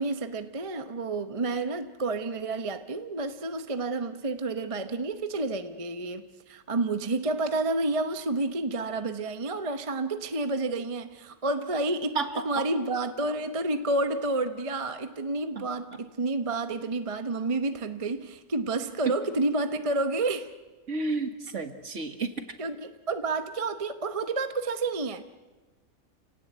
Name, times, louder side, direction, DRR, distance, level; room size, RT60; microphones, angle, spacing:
voice 1, 0.0-12.2 12.4-20.5 22.6-25.2, right 2 dB, 25° right, 8 dB, 0.9 m, -30 dB
voice 2, 20.9-22.3, right 4 dB, 55° right, 7 dB, 2.0 m, -31 dB
29.5 x 18.0 x 8.1 m, 1.3 s
omnidirectional pair, 1.6 m